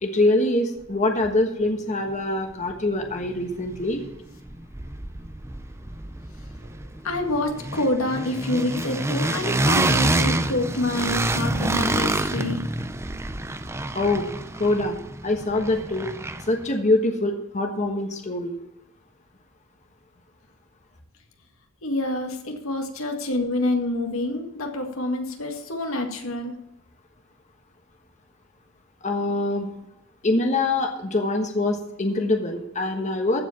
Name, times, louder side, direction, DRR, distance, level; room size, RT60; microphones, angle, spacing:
voice 1, 0.0-4.0 13.9-14.3 14.6-15.0 15.2-16.1 16.5-18.5 29.0-29.7 30.2-33.4, left 2 dB, 35° left, 4 dB, 1.3 m, -24 dB
sound 1, 2.7-2.8 3.0-4.2 4.4-16.7, right 2 dB, 15° right, 0.5 m, -27 dB
voice 2, 7.0-12.6 21.8-26.6, left 2 dB, 85° left, 3 dB, 2.0 m, -27 dB
15.0 x 5.1 x 7.3 m, 0.82 s
head